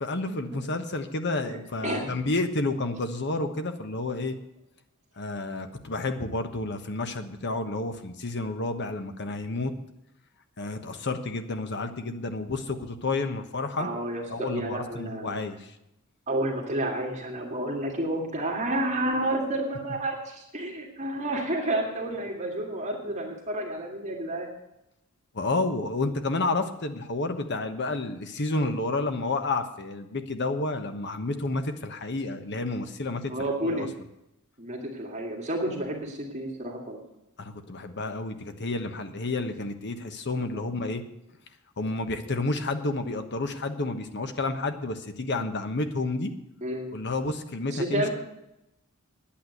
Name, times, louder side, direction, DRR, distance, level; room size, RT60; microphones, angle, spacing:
voice 1, 0.0-4.3 5.2-9.7 10.6-13.9 14.3-15.6 25.3-33.3 33.6-33.9 37.4-41.0 41.8-46.3 46.9-48.1, left 2 dB, 55° left, 8 dB, 1.2 m, -30 dB
voice 2, 1.5-2.1 13.8-15.4 16.3-24.5 33.3-33.9 34.6-37.0 40.5-40.6 46.6-47.0 47.7-48.1, right 1 dB, 35° right, 0 dB, 2.2 m, -30 dB
10.5 x 8.7 x 7.9 m, 0.86 s
head